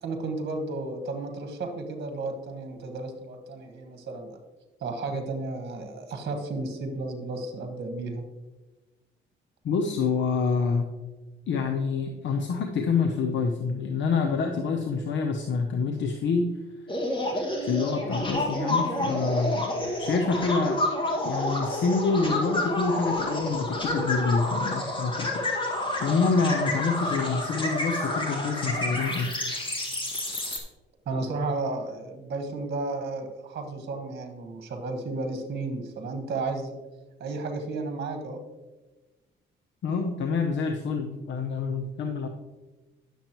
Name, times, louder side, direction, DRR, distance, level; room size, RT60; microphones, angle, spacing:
voice 1, 0.0-4.4 4.8-8.2 31.1-36.8 37.2-38.4, right 3 dB, 55° right, 5 dB, 1.4 m, -33 dB
voice 2, 9.6-10.9 11.5-16.5 17.6-19.6 20.0-20.8 21.2-25.4 26.0-29.3 39.8-42.3, left 4 dB, 65° left, 5 dB, 0.8 m, -27 dB
sound 1, 16.9-30.6, left 1 dB, 25° left, 1.9 m, -29 dB
10.0 x 7.2 x 3.0 m, 1.2 s
cardioid pair, 90°, 20 cm